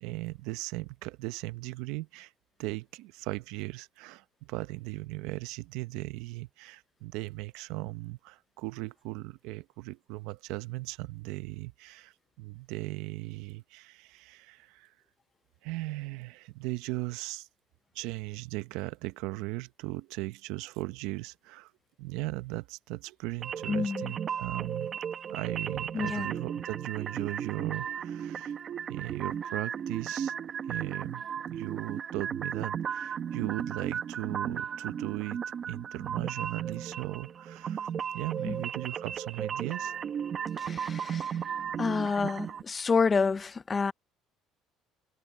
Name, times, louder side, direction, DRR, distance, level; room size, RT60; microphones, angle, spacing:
voice 1, 0.0-2.3 2.6-15.0 15.6-17.5 17.9-21.7 22.0-24.9 25.3-28.6 28.9-30.3 30.6-39.9, right 20 dB, 85° right, 0.7 m, -37 dB
sound 1, 23.4-42.6, right 8 dB, 40° right, 0.9 m, -35 dB
voice 2, 23.7-24.1 25.9-26.3 38.5-38.6 40.6-41.4 41.8-43.9, left 5 dB, 25° left, 0.5 m, -28 dB
cardioid pair, 130°, 0 cm